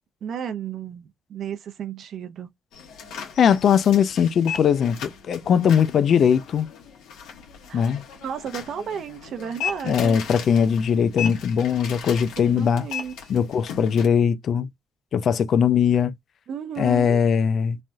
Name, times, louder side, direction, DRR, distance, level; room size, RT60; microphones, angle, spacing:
voice 1, 0.2-2.5 7.7-10.2 12.6-13.1 16.5-17.2, right 7 dB, 65° right, 0.6 m, -33 dB
sound 1, 2.7-14.1, left 7 dB, 85° left, 1.2 m, -37 dB
voice 2, 3.4-6.7 7.7-8.0 9.8-12.9 13.3-14.7 15.1-16.1 16.8-17.8, left 7 dB, 60° left, 0.4 m, -20 dB
3.3 x 2.3 x 2.6 m
cardioid pair, 90°, 0 cm